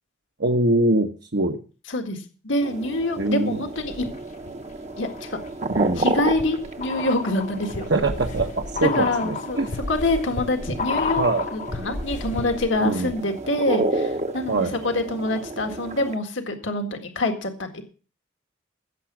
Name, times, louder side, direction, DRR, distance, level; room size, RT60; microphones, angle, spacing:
voice 1, 0.4-1.6 3.2-3.6 5.7-6.1 7.9-9.8 11.2-11.5 12.8-13.1 14.5-14.8, right 2 dB, 65° right, 4 dB, 1.1 m, -23 dB
voice 2, 1.9-4.1 5.0-5.4 6.0-7.9 8.8-9.6 9.9-11.2 11.5-17.8, left 2 dB, 80° left, 5 dB, 1.8 m, -26 dB
sound 1, 2.6-16.2, right 2 dB, 35° right, 0.9 m, -32 dB
sound 2, 3.8-4.5 5.0-12.8 13.1-13.2, left 4 dB, 40° left, 0.8 m, -32 dB
15.5 x 7.2 x 6.0 m, 0.38 s
head